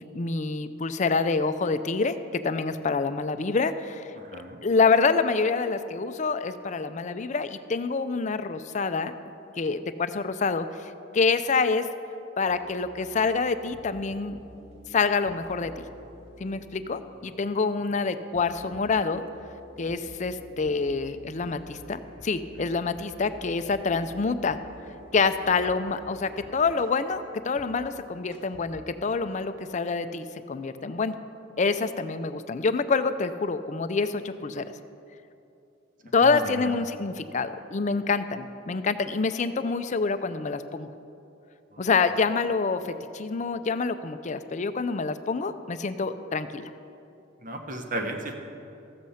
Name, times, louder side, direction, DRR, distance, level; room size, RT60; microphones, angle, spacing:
voice 1, 0.1-9.1 9.6-11.9 12.4-14.4 14.9-15.8 16.4-19.2 19.8-24.6 25.1-31.2 31.6-34.7 36.1-40.9 41.8-46.7, left 4 dB, 35° left, 11 dB, 0.5 m, -27 dB
voice 2, 4.2-4.6 36.2-36.7 41.7-41.9 47.4-48.4, right 1 dB, 40° right, 3 dB, 1.1 m, -35 dB
sound 1, 12.4-29.2, equal, 65° right, 2.0 m, -49 dB
14.0 x 7.7 x 5.6 m, 2.7 s
head